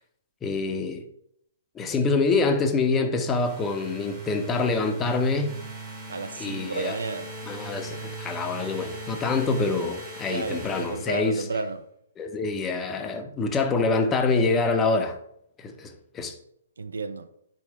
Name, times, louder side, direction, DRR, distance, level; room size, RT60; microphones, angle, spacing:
voice 1, 0.4-1.1 1.8-5.6 6.4-7.0 7.5-11.4 12.2-15.2 15.6-16.4, left 3 dB, 15° left, 0.5 m, -26 dB
sound 1, 3.3-11.6, right 2 dB, 20° right, 1.1 m, -40 dB
voice 2, 6.1-7.3 10.3-11.9 16.8-17.3, right 4 dB, 70° right, 0.4 m, -32 dB
4.2 x 3.0 x 4.1 m
figure-of-eight pair, 125°, 0 cm